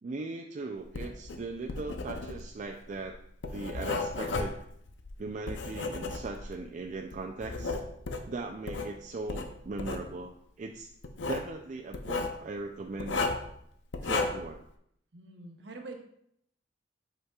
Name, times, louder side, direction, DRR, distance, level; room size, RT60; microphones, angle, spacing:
voice 1, 0.0-3.2 3.5-4.6 5.2-7.8 8.3-10.9 11.3-13.2 14.0-14.6, right 3 dB, 40° right, 2 dB, 0.3 m, -39 dB
Writing, 0.8-6.6 7.1-8.9 9.3-10.1 11.0-11.5 11.9-12.4 13.0-13.5 13.9-14.5, left 3 dB, 85° left, 0.6 m, -34 dB
voice 2, 15.1-16.0, right 3 dB, 65° right, 3 dB, 0.9 m, -45 dB
7.9 x 5.1 x 2.3 m, 0.71 s
head